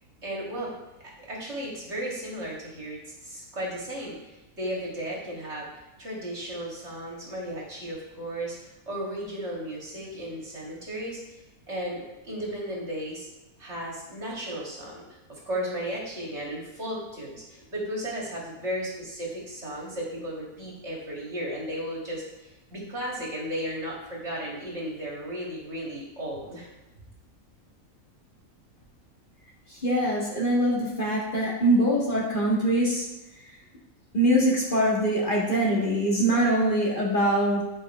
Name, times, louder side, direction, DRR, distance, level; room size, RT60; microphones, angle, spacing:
voice 1, 0.2-0.7 1.3-5.7 6.0-11.4 11.7-13.3 13.6-15.0 15.3-26.7, equal, 45° right, -3 dB, 2.4 m, -35 dB
voice 2, 29.8-33.1 34.1-37.6, right 1 dB, 35° left, -4 dB, 2.0 m, -23 dB
10.5 x 5.5 x 4.4 m, 1.0 s
omnidirectional pair, 1.6 m